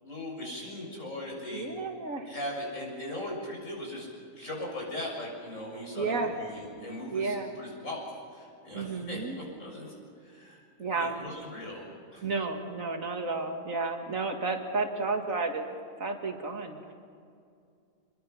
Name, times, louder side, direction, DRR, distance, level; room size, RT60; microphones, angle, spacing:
voice 1, 0.0-1.7 2.3-4.1 4.4-8.1 8.3-9.2 9.6-9.9 10.2-11.8 12.1-12.2, left 1 dB, 70° left, -3 dB, 7.3 m, -39 dB
voice 2, 1.5-2.3 6.0-6.4 7.1-7.5 8.7-9.4 10.8-11.2 12.2-15.7 16.0-17.0, right 3 dB, 75° right, 3 dB, 2.4 m, -32 dB
27.0 x 22.0 x 5.8 m, 2.4 s
omnidirectional pair, 1.4 m